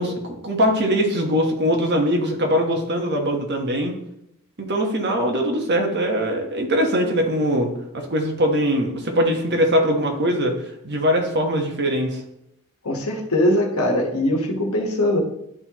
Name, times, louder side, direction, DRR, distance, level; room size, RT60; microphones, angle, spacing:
voice 1, 0.0-4.0 4.6-10.5 10.8-12.2, equal, 50° right, 2 dB, 1.2 m, -21 dB
voice 2, 12.8-15.2, left 1 dB, 75° left, 1 dB, 1.4 m, -21 dB
11.5 x 4.3 x 3.0 m, 0.79 s
head